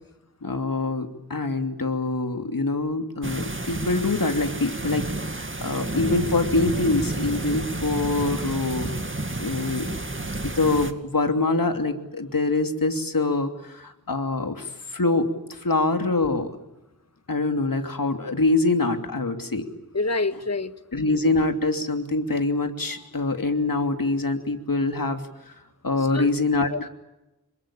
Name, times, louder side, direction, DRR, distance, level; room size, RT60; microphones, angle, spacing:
voice 1, 0.4-5.0 5.3-8.9 9.4-9.9 10.4-16.5 17.3-19.7 20.9-25.2 25.8-26.9, left 3 dB, 65° left, 6 dB, 3.0 m, -24 dB
sound 1, 3.2-10.9, right 2 dB, 35° right, 2.3 m, -30 dB
voice 2, 19.9-20.7 26.1-26.3 26.7-26.9, left 3 dB, 45° left, 10 dB, 1.8 m, -26 dB
27.5 x 22.5 x 8.7 m, 0.95 s
wide cardioid pair, 50°, 36 cm